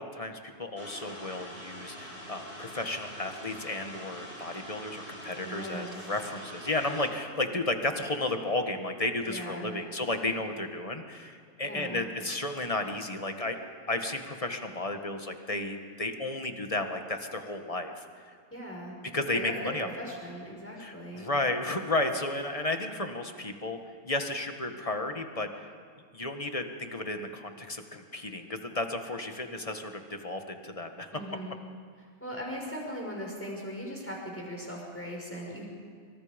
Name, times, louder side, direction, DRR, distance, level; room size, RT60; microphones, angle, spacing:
voice 1, 0.0-13.6 13.9-18.4 19.1-19.9 20.8-23.8 24.0-25.5 26.1-31.2, left 2 dB, 25° left, 5 dB, 1.6 m, -33 dB
sound 1, 0.8-7.1, equal, 45° right, 5.3 m, -44 dB
voice 2, 5.4-6.1 9.3-9.8 11.6-12.0 18.5-18.9 19.3-19.5 19.8-21.3 31.1-31.6 32.2-35.7, equal, 10° left, -2 dB, 5.8 m, -39 dB
26.5 x 25.5 x 5.3 m, 2.1 s
omnidirectional pair, 1.5 m